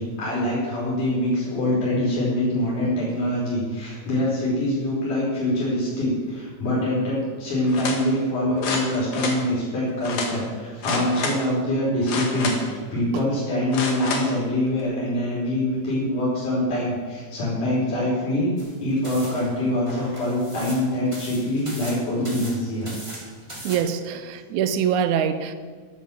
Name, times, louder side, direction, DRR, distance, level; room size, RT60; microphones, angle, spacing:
voice 1, 0.0-18.5 18.8-22.9, left 1 dB, 80° left, -7 dB, 6.6 m, -24 dB
sound 1, 7.7-8.0 8.6-9.4 10.0-10.3 10.8-11.4 12.0-12.7 13.7-14.3 14.8-14.9, left 4 dB, 55° left, 2.8 m, -28 dB
sound 2, 18.6-23.8, right 1 dB, 10° right, 2.9 m, -40 dB
voice 2, 23.6-25.5, right 8 dB, 75° right, 11 dB, 2.2 m, -24 dB
12.0 x 11.0 x 7.2 m, 1.5 s
omnidirectional pair, 3.6 m